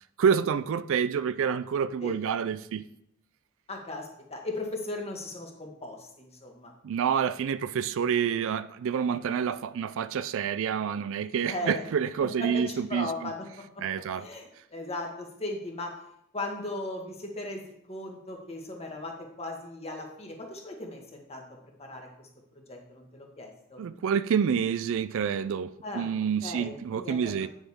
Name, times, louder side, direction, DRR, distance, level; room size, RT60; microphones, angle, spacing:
voice 1, 0.2-2.8 6.8-13.3 13.8-14.3 23.8-27.5, right 7 dB, 65° right, 0.4 m, -28 dB
voice 2, 3.7-6.7 11.5-11.8 12.4-12.6 12.9-13.8 14.2-15.9 16.3-17.6 17.9-21.4 21.8-22.3 22.7-23.8 25.8-26.1 26.4-27.5, left 2 dB, 30° left, 1.7 m, -37 dB
9.1 x 7.2 x 3.6 m
head